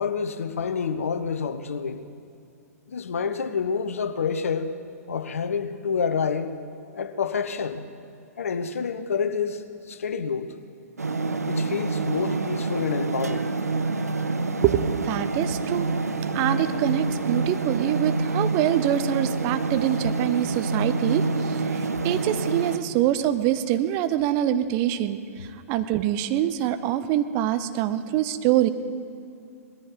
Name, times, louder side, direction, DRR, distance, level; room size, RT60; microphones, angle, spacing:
voice 1, 0.0-2.0 2.9-4.7 5.1-6.6 6.9-7.9 8.4-10.5 11.5-13.5 25.4-25.5, left 6 dB, 60° left, 0.9 m, -28 dB
sound 1, 11.0-22.8, right 3 dB, 75° right, 0.8 m, -27 dB
voice 2, 14.6-15.9 16.3-25.2 25.7-28.7, right 12 dB, 30° right, 0.6 m, -25 dB
19.5 x 14.0 x 4.6 m
figure-of-eight pair, 115°, 8 cm